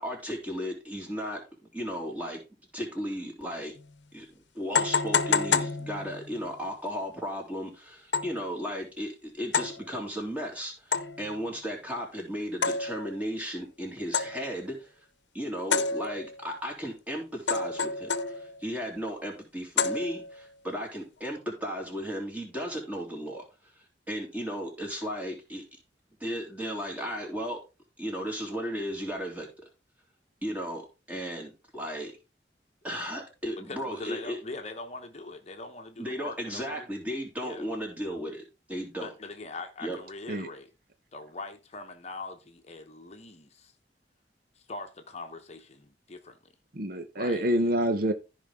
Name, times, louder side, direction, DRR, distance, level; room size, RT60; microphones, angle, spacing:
voice 1, 0.0-1.4 1.7-2.4 2.7-3.7 4.1-4.3 4.5-14.9 15.3-23.5 24.1-25.6 26.2-27.6 28.0-29.6 30.4-30.8 31.1-32.1 32.8-34.4 36.0-39.1 39.8-40.0, equal, 10° right, 3.4 m, -35 dB
sound 1, 3.8-3.9 4.7-6.4 8.1-8.5 9.5-9.9 10.9-11.3 12.6-13.2 14.1-14.6 15.7-16.5 17.5-18.7 19.8-20.5, left 5 dB, 80° left, 0.8 m, -29 dB
voice 2, 33.7-36.9 37.4-37.7 39.0-40.7 41.1-43.7 44.5-46.5 47.1-47.5, left 3 dB, 40° left, 1.0 m, -42 dB
voice 3, 46.7-48.1, right 1 dB, 55° right, 0.9 m, -27 dB
14.0 x 5.3 x 3.7 m
head